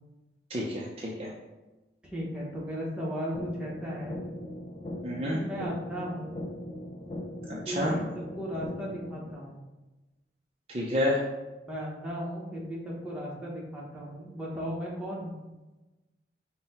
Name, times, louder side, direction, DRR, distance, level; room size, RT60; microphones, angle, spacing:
voice 1, 0.5-1.3 5.0-5.4 7.5-7.9 10.7-11.2, left 1 dB, 35° right, -3 dB, 0.5 m, -29 dB
voice 2, 2.1-4.2 5.3-6.4 7.6-9.6 11.7-15.4, equal, 5° right, -5 dB, 0.9 m, -36 dB
sound 1, 3.3-9.3, left 1 dB, 35° left, 0.4 m, -39 dB
5.6 x 2.2 x 4.1 m, 1.1 s
head